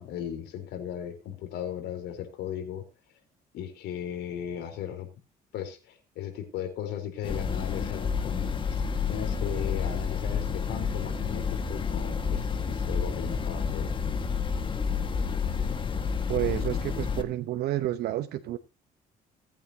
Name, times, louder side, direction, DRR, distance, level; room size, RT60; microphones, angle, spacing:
voice 1, 0.0-2.9 3.5-5.1 5.5-8.5 9.1-13.9, left 9 dB, 80° left, 6 dB, 4.0 m, -36 dB
sound 1, 7.2-17.2, left 6 dB, 30° left, 1.7 m, -30 dB
voice 2, 16.3-18.6, right 13 dB, 70° right, 9 dB, 0.9 m, -30 dB
19.0 x 8.7 x 2.8 m, 0.28 s
cardioid pair, 110°, 17 cm